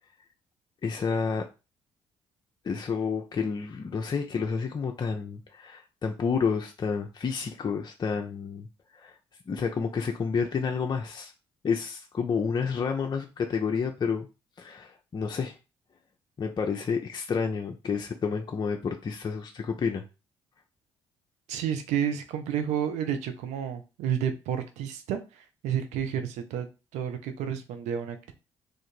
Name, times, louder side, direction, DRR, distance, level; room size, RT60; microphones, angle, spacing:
voice 1, 0.8-1.5 2.6-8.7 8.9-9.2 9.5-11.3 11.6-14.3 14.6-15.6 16.4-20.0, left 5 dB, 35° left, 3 dB, 0.6 m, -30 dB
voice 2, 21.5-28.3, right 9 dB, 65° right, 7 dB, 0.7 m, -31 dB
3.7 x 2.5 x 4.4 m, 0.29 s
figure-of-eight pair, 45°, 13 cm